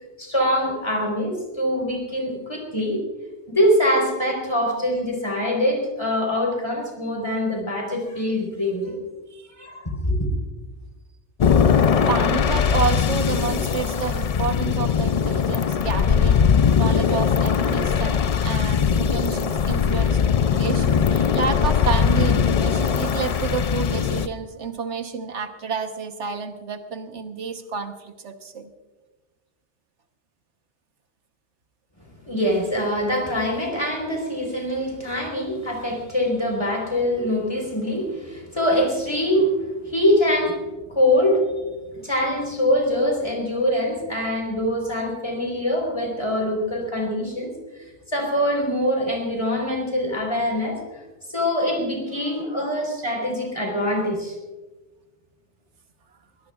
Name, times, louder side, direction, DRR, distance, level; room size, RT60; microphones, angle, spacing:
voice 1, 0.2-3.0 3.5-9.0 9.6-10.3 32.3-40.6 40.9-41.5 41.9-47.5 48.1-50.8 51.3-54.4, equal, 25° left, 1 dB, 4.1 m, -23 dB
sound 1, 11.4-24.3, left 7 dB, 50° left, 0.4 m, -20 dB
voice 2, 12.1-28.7 52.2-52.5, right 5 dB, 85° right, 6 dB, 1.4 m, -30 dB
23.0 x 17.5 x 2.4 m, 1.2 s
omnidirectional pair, 1.2 m